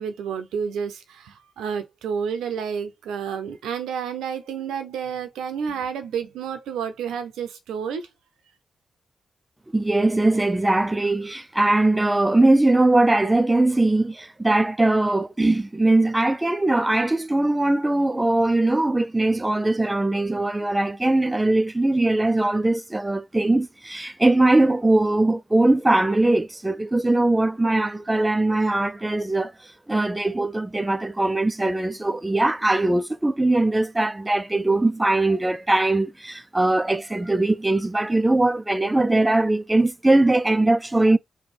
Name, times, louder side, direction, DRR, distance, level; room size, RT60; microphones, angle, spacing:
voice 1, 0.0-8.1, right 7 dB, 85° right, 0.7 m, -30 dB
voice 2, 9.7-41.2, right 2 dB, 20° right, 0.5 m, -21 dB
3.4 x 2.3 x 4.4 m
supercardioid pair, 40°, 0 cm